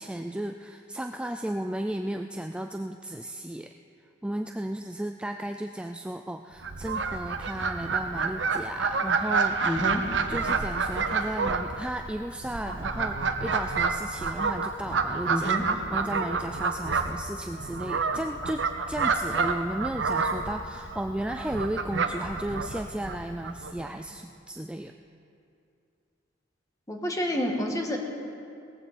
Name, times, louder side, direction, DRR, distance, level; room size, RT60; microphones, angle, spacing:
voice 1, 0.0-3.7 4.2-9.6 10.3-24.9, right 1 dB, 5° right, 5 dB, 0.3 m, -34 dB
Fowl, 6.6-23.9, right 4 dB, 80° right, 0.9 m, -29 dB
voice 2, 9.6-10.0 15.3-15.6 26.9-28.0, equal, 20° left, 1 dB, 1.5 m, -28 dB
18.5 x 14.5 x 4.2 m, 2.5 s
head